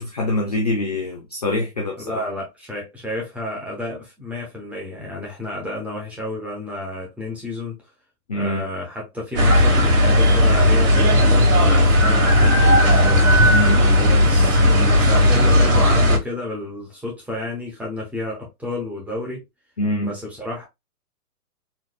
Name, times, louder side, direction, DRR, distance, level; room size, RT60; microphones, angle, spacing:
voice 1, 0.0-2.3 8.3-8.6 13.5-14.1 19.8-20.2, left 1 dB, 30° left, 0.4 m, -24 dB
voice 2, 2.0-7.7 8.3-13.2 14.0-19.4 20.0-20.7, left 2 dB, 5° right, 0.7 m, -31 dB
sound 1, 9.4-16.2, left 1 dB, 55° right, 2.0 m, -15 dB
4.2 x 3.1 x 2.3 m
hypercardioid pair, 150°, 47 cm